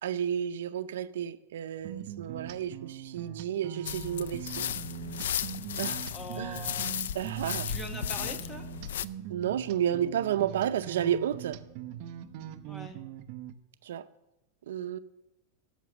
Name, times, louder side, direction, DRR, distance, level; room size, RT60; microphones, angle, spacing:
voice 1, 0.0-4.7 5.8-6.1 6.4-6.6 7.1-7.7 9.3-11.6 13.8-14.1 14.7-15.0, right 10 dB, 80° right, 0.6 m, -31 dB
sound 1, 1.8-13.5, right 10 dB, 40° right, 0.7 m, -42 dB
sound 2, 3.9-9.1, left 10 dB, 85° left, 0.4 m, -35 dB
voice 2, 6.1-6.9 7.7-8.6 12.7-13.0, left 1 dB, 10° left, 1.0 m, -42 dB
17.5 x 6.0 x 7.1 m
supercardioid pair, 165°, 0 cm